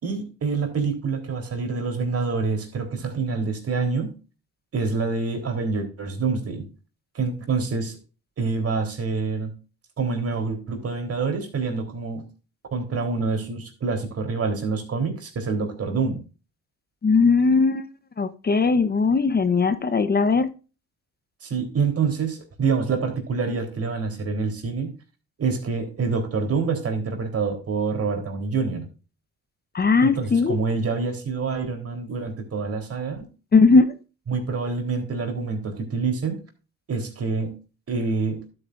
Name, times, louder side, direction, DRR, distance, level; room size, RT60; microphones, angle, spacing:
voice 1, 0.0-4.1 4.7-6.7 7.1-8.0 8.4-9.5 10.0-12.2 12.7-16.2 21.4-24.9 25.4-28.9 30.0-33.3 34.3-36.4 36.9-37.5 37.9-38.4, right 4 dB, 50° right, 3.8 m, -26 dB
voice 2, 17.0-17.9 18.2-20.5 29.7-30.6 33.5-33.9, left 4 dB, 30° left, 1.0 m, -19 dB
12.0 x 8.6 x 2.6 m
cardioid pair, 90°, 30 cm